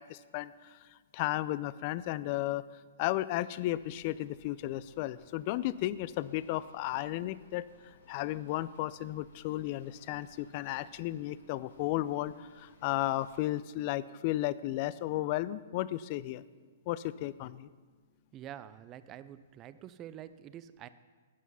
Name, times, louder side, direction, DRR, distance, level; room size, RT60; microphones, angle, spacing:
voice 1, 0.0-2.6 3.0-16.4 16.9-17.7, left 15 dB, 45° left, 17 dB, 0.5 m, -34 dB
sound 1, 3.7-13.5, left 2 dB, 75° left, 3.8 m, -62 dB
voice 2, 18.3-20.9, right 11 dB, 30° right, 14 dB, 0.6 m, -47 dB
14.0 x 9.2 x 5.6 m, 1.4 s
hypercardioid pair, 120°, 0 cm